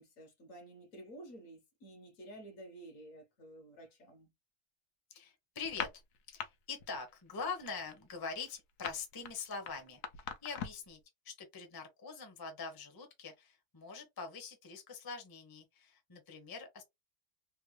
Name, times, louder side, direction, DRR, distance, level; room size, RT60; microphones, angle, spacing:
voice 1, 0.0-4.3, right 1 dB, 60° left, 1.2 m, -52 dB
voice 2, 5.1-5.9 6.3-11.0 11.2-16.8, left 5 dB, 20° left, 0.6 m, -44 dB
sound 1, 5.6-6.5 6.8-7.1 7.4-10.9, left 7 dB, 85° left, 1.2 m, -42 dB
3.5 x 2.1 x 3.1 m
omnidirectional pair, 1.6 m